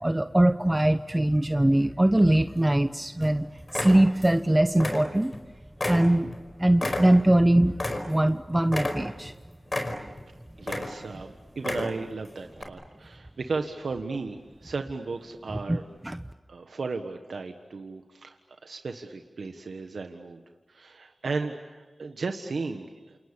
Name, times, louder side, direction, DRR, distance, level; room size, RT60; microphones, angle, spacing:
voice 1, 0.0-3.5 3.7-5.3 5.9-6.3 6.6-7.7 8.1-9.3 15.7-15.8 16.0-16.2, right 1 dB, 20° right, 10 dB, 0.9 m, -22 dB
sound 1, 2.2-2.8 3.2-3.4 3.7-4.4 4.7-5.4 5.8-8.4 8.7-9.3 9.7-10.2 10.6-11.2 11.5-12.1 12.6-12.7, left 1 dB, 45° left, 5.0 m, -32 dB
voice 2, 10.6-15.8 16.5-18.4 18.6-20.4 20.7-23.2, right 4 dB, 80° right, 5 dB, 1.5 m, -35 dB
29.0 x 28.0 x 7.1 m, 1.3 s
cardioid pair, 40°, 0 cm